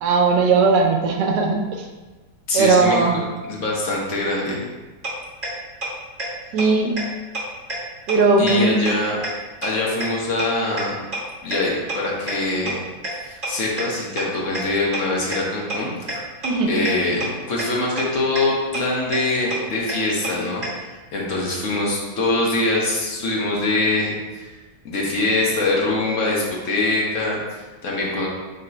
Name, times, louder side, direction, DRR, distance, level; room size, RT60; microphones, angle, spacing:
voice 1, 0.0-1.9 2.5-3.2 6.5-6.9 8.1-8.8 16.4-16.7, right 4 dB, 80° right, 3 dB, 1.3 m, -18 dB
voice 2, 2.5-3.2 3.5-4.6 8.4-9.2 9.6-11.0 11.4-12.8 13.1-16.2 16.7-20.8 21.1-24.5 24.8-28.3, left 2 dB, 55° left, -3 dB, 1.1 m, -23 dB
sound 1, 5.0-5.1 5.4-5.5 5.8-5.9 6.2-6.3 6.6-6.7 7.0-7.1 7.3-7.4 7.7-7.8 8.1-8.2 8.5-8.6 8.9-9.0 9.2-9.3 9.6-9.7 10.0-10.1 10.4-10.5 10.8-10.9 11.1-11.2 11.5-11.6 11.9-12.0 12.3-12.4 12.7-12.8 13.0-13.1 13.4-13.5 13.8-13.9 14.2-14.3 14.5-14.6 14.9-15.0 15.3-15.4 15.7-15.8 16.1-16.2 16.4-16.5 16.8-16.9 17.2-17.3 17.6-17.7 18.0-18.1 18.4-18.5 18.7-18.8 19.1-19.2 19.5-19.6 19.9-20.0 20.2-20.3 20.6-20.7, right 2 dB, 35° right, 1.3 m, -27 dB
3.9 x 2.9 x 4.3 m, 1.2 s
omnidirectional pair, 1.9 m